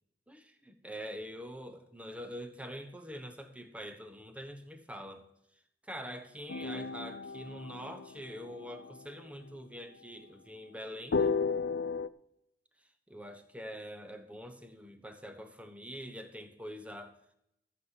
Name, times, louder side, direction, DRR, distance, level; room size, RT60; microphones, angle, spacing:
voice 1, 0.3-5.2 5.9-11.4 13.1-17.2, equal, 10° right, 8 dB, 1.2 m, -45 dB
sound 1, 6.5-8.9 11.1-12.1, left 5 dB, 85° left, 0.5 m, -33 dB
14.0 x 6.5 x 7.5 m, 0.78 s
head